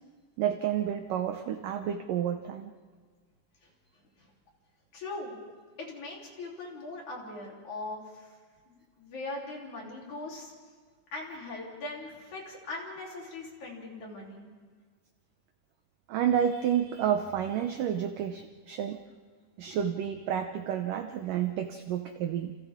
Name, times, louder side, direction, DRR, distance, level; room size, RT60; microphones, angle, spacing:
voice 1, 0.4-2.7 16.1-19.0 19.6-22.6, right 9 dB, 80° right, 6 dB, 1.9 m, -30 dB
voice 2, 4.9-5.4 5.8-8.3 8.7-10.5 11.1-14.5, left 2 dB, 45° left, -2 dB, 4.5 m, -40 dB
29.0 x 29.0 x 3.6 m, 1.5 s
omnidirectional pair, 5.0 m